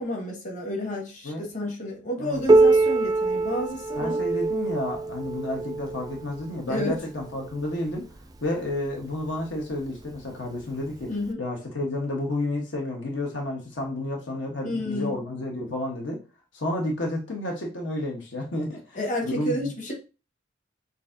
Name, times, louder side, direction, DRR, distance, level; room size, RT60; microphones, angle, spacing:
voice 1, 0.0-4.2 6.7-6.9 11.1-11.4 14.6-15.1 18.9-19.9, left 1 dB, 45° left, 0 dB, 1.5 m, -30 dB
Piano, 2.5-7.8 8.7-8.8 9.3-9.4 10.2-10.3 11.3-11.4, right 3 dB, 20° right, 0.3 m, -24 dB
voice 2, 4.0-8.1 8.4-11.1 11.4-16.2 16.5-19.7, left 1 dB, 75° left, 0 dB, 1.1 m, -31 dB
6.7 x 2.7 x 2.6 m, 0.31 s
head